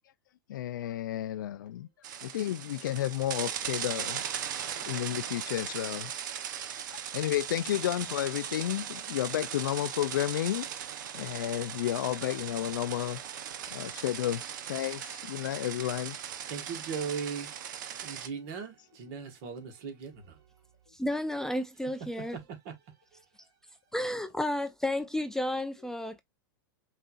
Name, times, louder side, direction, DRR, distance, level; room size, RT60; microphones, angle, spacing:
voice 1, 0.5-1.9 2.2-4.2 4.7-6.1 6.9-10.7 11.1-13.2 13.7-16.2, left 13 dB, 75° left, 0.4 m, -32 dB
sound 1, 2.0-18.3, right 9 dB, 70° right, 0.7 m, -38 dB
voice 2, 16.5-17.5 18.0-20.4 22.3-22.4 22.7-22.8 23.1-23.2, right 6 dB, 55° right, 1.7 m, -38 dB
voice 3, 20.9-22.4 23.9-26.2, left 1 dB, 5° left, 0.4 m, -32 dB
5.5 x 2.7 x 2.4 m
hypercardioid pair, 105°, 11 cm